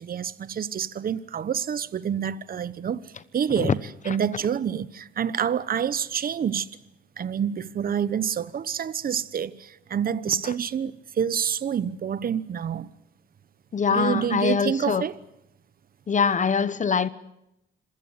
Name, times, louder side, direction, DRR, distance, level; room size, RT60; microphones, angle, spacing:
voice 1, 0.0-3.8 4.0-6.7 7.2-12.9 13.9-15.2, right 8 dB, 45° right, 1.1 m, -27 dB
voice 2, 13.7-15.0 16.1-17.1, left 6 dB, 40° left, 1.1 m, -23 dB
26.5 x 16.5 x 9.7 m
cardioid pair, 90°, 20 cm